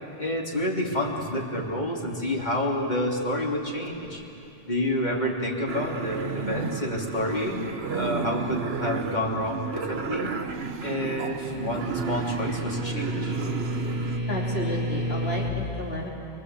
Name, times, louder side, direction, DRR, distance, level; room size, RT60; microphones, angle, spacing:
voice 1, 0.2-4.2 4.6-10.3 10.8-13.4, left 1 dB, 45° left, -2 dB, 3.3 m, -29 dB
sound 1, 5.7-14.2, right 5 dB, 75° right, 1.2 m, -33 dB
sound 2, 11.0-15.5, equal, 15° right, 2.7 m, -31 dB
voice 2, 14.3-16.1, left 1 dB, 75° left, -2 dB, 3.3 m, -32 dB
26.0 x 24.5 x 8.3 m, 2.8 s
omnidirectional pair, 1.1 m